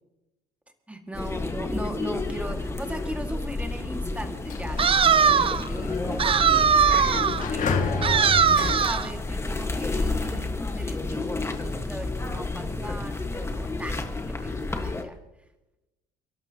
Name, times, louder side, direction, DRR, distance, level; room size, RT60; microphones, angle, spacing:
voice 1, 0.9-15.2, right 1 dB, 5° right, 4 dB, 2.1 m, -38 dB
sound 1, 1.1-15.0, left 3 dB, 15° left, 1.6 m, -31 dB
Sliding door, 4.2-9.8, left 5 dB, 50° left, 2.1 m, -32 dB
sound 2, 4.8-5.7 6.2-7.4 8.0-9.1, right 7 dB, 35° right, 0.6 m, -20 dB
30.0 x 12.0 x 3.0 m, 0.96 s
cardioid pair, 110°, 17 cm